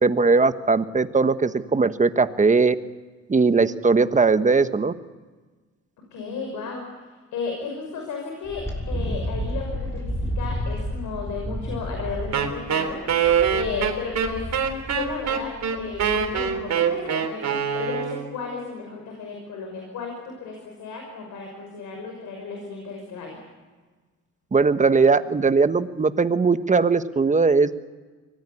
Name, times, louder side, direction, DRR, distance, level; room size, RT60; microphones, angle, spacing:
voice 1, 0.0-2.7 3.3-4.9 24.5-27.8, right 4 dB, 25° right, 11 dB, 1.3 m, -19 dB
voice 2, 6.1-13.2 13.5-14.4 14.9-17.4 17.7-23.4, left 5 dB, 85° left, 2 dB, 6.1 m, -34 dB
Wind, 8.4-16.6, equal, 10° left, 6.1 m, -32 dB
Wind instrument woodwind instrument, 12.3-18.4, right 7 dB, 60° right, 3.7 m, -24 dB
24.5 x 19.0 x 9.8 m, 1.3 s
cardioid pair, 90°, 30 cm